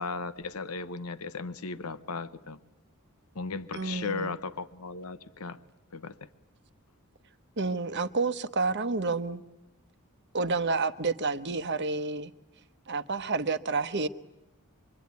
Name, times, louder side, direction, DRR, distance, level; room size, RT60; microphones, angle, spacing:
voice 1, 0.0-2.6 3.3-5.6 5.9-6.3, left 4 dB, 80° left, 1.0 m, -36 dB
voice 2, 3.7-4.3 7.6-9.4 10.3-12.3 12.9-14.1, right 3 dB, 50° right, 1.0 m, -29 dB
25.5 x 23.5 x 9.6 m
head